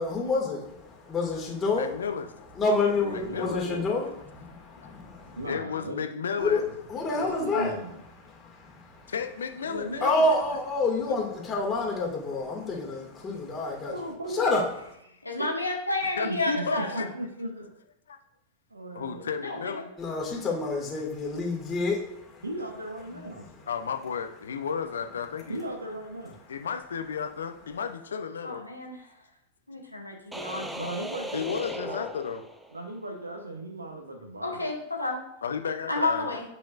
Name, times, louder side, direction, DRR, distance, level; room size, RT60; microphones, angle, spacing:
voice 1, 0.0-1.9 2.6-5.4 6.4-6.6 6.9-7.7 8.3-9.1 10.0-13.9 14.3-14.6 20.0-22.4, left 3 dB, 20° left, 2.1 m, -28 dB
voice 2, 1.7-2.3 3.1-3.6 4.8-4.9 5.5-6.7 9.1-10.4 11.3-11.4 16.2-17.1 18.1-18.2 18.9-19.9 23.7-25.6 26.5-28.6 31.3-32.4 35.4-36.3, left 6 dB, 70° left, 0.7 m, -33 dB
voice 3, 3.2-3.8 5.4-6.0 7.2-8.0 9.7-10.3 13.2-14.6 15.1-15.5 16.2-17.7 18.7-19.3 22.4-23.5 25.5-26.3 30.7-32.1 32.7-34.7, right 1 dB, 80° right, 0.9 m, -37 dB
voice 4, 15.2-17.0 19.4-19.8 28.4-29.0 29.7-30.7 34.4-35.2 35.9-36.4, left 2 dB, 85° left, 1.4 m, -30 dB
sound 1, 30.3-32.9, equal, 5° right, 0.5 m, -38 dB
9.4 x 5.2 x 2.5 m
figure-of-eight pair, 90°, 0 cm